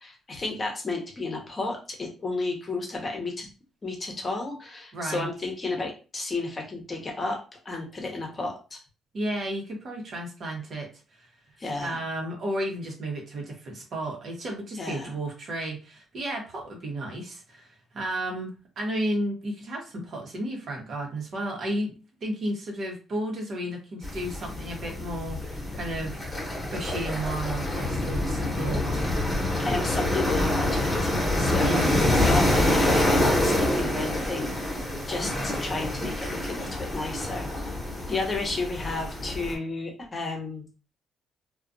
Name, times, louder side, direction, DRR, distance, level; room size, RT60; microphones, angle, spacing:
voice 1, 0.0-3.5 3.8-7.4 7.6-8.8 11.6-12.0 14.8-15.1 29.6-34.7 35.1-37.7 38.1-40.7, left 3 dB, 35° left, 1 dB, 0.8 m, -32 dB
voice 2, 4.9-5.3 9.1-10.9 11.2-11.3 11.8-17.7 17.9-26.5 26.7-29.0 31.6-31.9, right 1 dB, 55° right, 0 dB, 0.9 m, -33 dB
sound 1, 24.0-39.5, left 1 dB, 10° left, 1.0 m, -26 dB
2.4 x 2.2 x 2.5 m, 0.33 s
cardioid pair, 90°, 0 cm